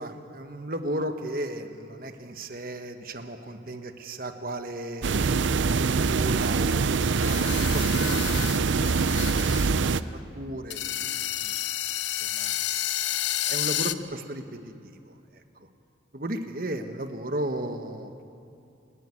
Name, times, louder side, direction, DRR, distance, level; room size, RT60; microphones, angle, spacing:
voice 1, 0.0-5.4 5.7-10.0 10.3-11.5 12.2-12.5 13.0-15.7 16.1-18.2, right 1 dB, 50° right, 7 dB, 1.3 m, -36 dB
sound 1, 5.0-10.0, right 4 dB, 85° right, 0.6 m, -24 dB
sound 2, 7.2-9.7 10.0-10.1 10.7-13.9, left 12 dB, 75° left, 0.6 m, -30 dB
29.5 x 11.0 x 9.8 m, 2.6 s
head